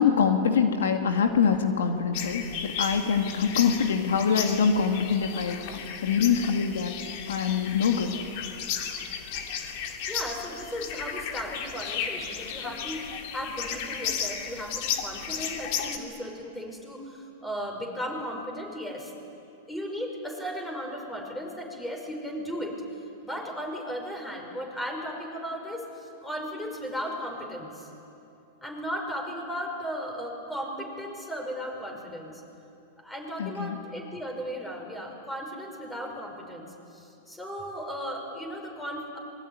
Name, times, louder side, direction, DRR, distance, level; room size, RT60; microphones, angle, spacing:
voice 1, 0.0-6.9 7.3-8.1 33.4-33.8, left 6 dB, 90° left, 5 dB, 2.2 m, -24 dB
sound 1, 2.1-16.0, left 7 dB, 55° left, 2.7 m, -34 dB
voice 2, 10.1-19.1 19.7-22.8 23.2-27.9 28.6-32.4 33.0-39.2, equal, 5° left, 2 dB, 5.5 m, -36 dB
26.0 x 22.0 x 9.7 m, 2.7 s
hypercardioid pair, 130°, 0 cm